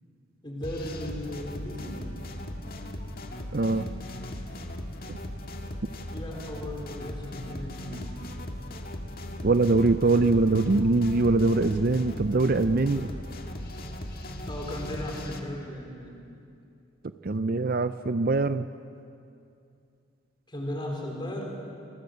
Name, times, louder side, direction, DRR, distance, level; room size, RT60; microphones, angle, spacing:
voice 1, 0.4-2.0 6.1-8.3 12.9-13.2 14.4-16.2 20.5-21.6, left 1 dB, 20° left, 1 dB, 4.2 m, -36 dB
sound 1, 0.6-15.4, left 1 dB, 45° left, 2.0 m, -38 dB
voice 2, 3.5-3.9 5.1-5.2 9.4-13.1 17.2-18.7, right 3 dB, 45° right, 12 dB, 0.5 m, -23 dB
26.5 x 20.5 x 8.1 m, 2.5 s
head